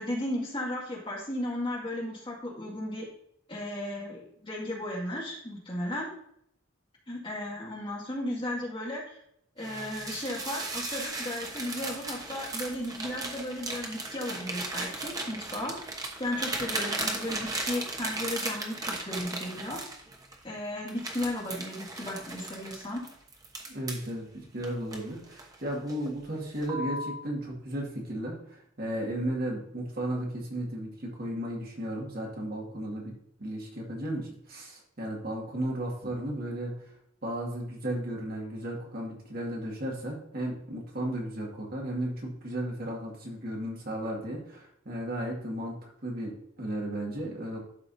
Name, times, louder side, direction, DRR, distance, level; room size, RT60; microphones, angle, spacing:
voice 1, 0.0-3.1 3.5-6.1 7.1-9.2 9.6-15.7 16.2-19.8 20.4-23.0, left 1 dB, 25° left, -3 dB, 2.1 m, -35 dB
sound 1, 9.6-20.4 20.9-24.1 24.6-25.5 25.9-26.2 26.6-27.2, right 2 dB, 20° right, 1.0 m, -36 dB
voice 2, 23.7-33.1 33.4-36.7 37.2-45.8 46.0-47.6, right 1 dB, 50° right, -2 dB, 2.0 m, -34 dB
12.0 x 4.8 x 2.7 m, 0.70 s
head